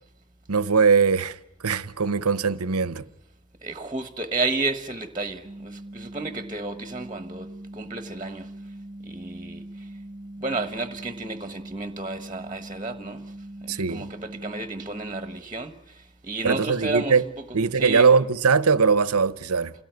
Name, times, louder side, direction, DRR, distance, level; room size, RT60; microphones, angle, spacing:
voice 1, 0.5-1.4 1.6-3.0 13.7-14.1 16.4-17.2 17.5-19.7, right 5 dB, 90° right, 0.9 m, -21 dB
voice 2, 3.6-8.5 9.0-9.9 10.4-13.3 13.6-18.1, right 3 dB, 20° right, 1.2 m, -32 dB
sound 1, 5.4-15.4, right 1 dB, 35° right, 0.9 m, -41 dB
28.5 x 17.5 x 9.4 m
head